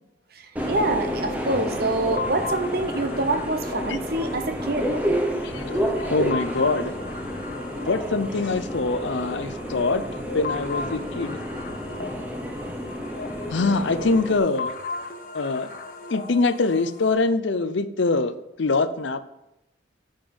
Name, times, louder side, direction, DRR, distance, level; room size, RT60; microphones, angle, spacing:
voice 1, 0.3-4.9, right 2 dB, 50° right, 8 dB, 0.9 m, -26 dB
sound 1, 0.6-17.1, left 3 dB, 45° left, 1.1 m, -36 dB
Subway metro underground, 0.6-14.4, equal, 10° right, 0.9 m, -30 dB
voice 2, 5.3-6.9 7.9-11.4 13.5-14.8 15.3-15.7 16.1-19.2, left 3 dB, 70° left, 13 dB, 0.6 m, -24 dB
9.0 x 5.2 x 7.0 m, 0.90 s
head